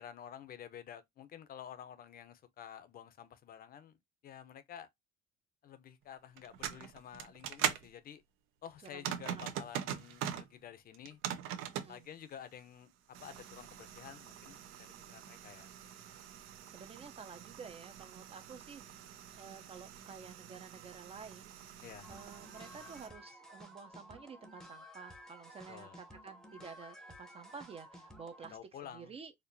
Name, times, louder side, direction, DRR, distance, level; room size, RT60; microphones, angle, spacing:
voice 1, 0.0-4.0 4.2-4.9 5.6-8.2 8.6-11.2 11.9-12.9 13.2-16.2 21.8-22.1 25.7-26.0 28.5-29.1, left 9 dB, 45° left, 0.7 m, -51 dB
sound 1, 6.4-7.9 8.8-10.5 10.9-11.9 13.1-23.1, right 10 dB, 75° right, 0.7 m, -42 dB
voice 2, 8.9-9.5 11.7-12.1 16.2-16.3 16.7-29.3, right 5 dB, 30° right, 0.5 m, -51 dB
sound 2, 22.0-28.6, equal, ahead, 0.8 m, -54 dB
4.3 x 2.5 x 2.6 m
cardioid pair, 130°, 21 cm